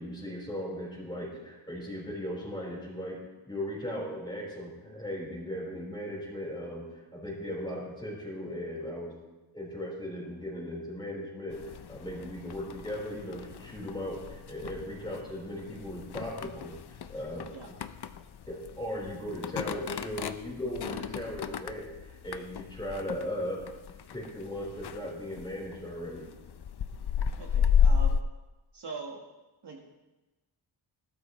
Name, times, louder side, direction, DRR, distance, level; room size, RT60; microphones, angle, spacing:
voice 1, 0.0-3.2 3.5-9.1 9.5-11.6 11.9-17.5 18.5-23.6 24.1-26.3, equal, 10° left, -4 dB, 4.3 m, -37 dB
sound 1, 11.5-28.2, left 7 dB, 55° left, 0.6 m, -33 dB
voice 2, 27.4-28.2 28.7-29.2 29.6-29.9, right 4 dB, 55° right, 0 dB, 1.5 m, -42 dB
19.5 x 12.5 x 3.2 m, 1.1 s
wide cardioid pair, 170°, 48 cm